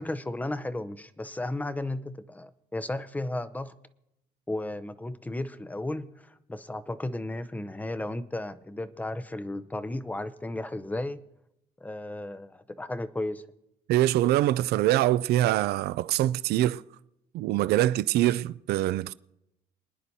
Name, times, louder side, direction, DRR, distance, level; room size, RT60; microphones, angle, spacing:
voice 1, 0.0-3.7 4.5-11.2 11.8-13.5, left 1 dB, 10° left, 0.6 m, -34 dB
voice 2, 13.9-16.8 17.3-19.1, right 14 dB, 70° right, 0.4 m, -24 dB
27.5 x 10.0 x 2.8 m
cardioid pair, 110°, 17 cm